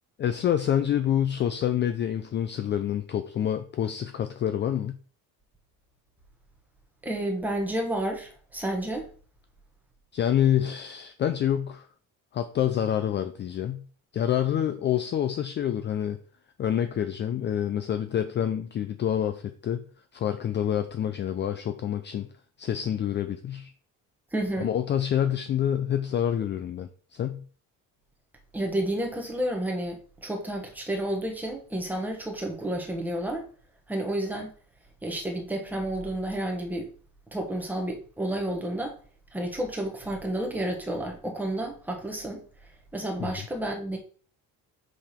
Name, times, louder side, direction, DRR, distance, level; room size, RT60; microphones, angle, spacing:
voice 1, 0.2-5.0 10.1-11.9 12.3-13.8 14.1-16.2 16.6-19.8 20.1-22.3 22.6-23.7 24.6-27.4 43.2-43.5, left 10 dB, 35° left, 9 dB, 0.4 m, -27 dB
voice 2, 7.0-9.1 24.3-24.7 28.5-33.5 33.9-34.5 35.0-36.9 37.3-39.0 39.3-42.4 42.9-44.0, right 1 dB, 5° right, 2 dB, 1.2 m, -30 dB
5.8 x 5.1 x 4.3 m, 0.42 s
cardioid pair, 160°, 35 cm